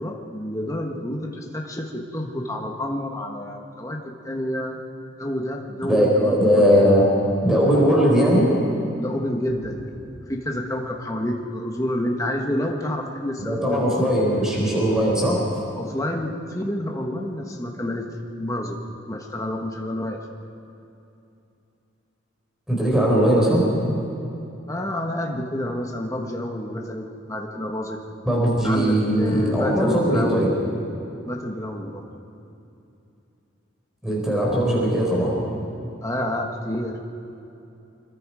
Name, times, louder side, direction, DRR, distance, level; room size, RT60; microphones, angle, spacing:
voice 1, 0.0-4.8 5.2-6.9 9.0-9.9 10.3-14.1 15.8-18.1 18.4-18.8 19.1-20.2 24.7-28.0 28.6-30.6 31.2-32.1 36.0-37.0, left 1 dB, 15° left, 1 dB, 1.4 m, -29 dB
voice 2, 5.9-7.0 7.4-8.5 13.4-15.5 22.7-23.6 28.2-30.5 34.0-35.3, equal, 5° right, -4 dB, 4.7 m, -19 dB
25.5 x 21.5 x 4.9 m, 2.7 s
head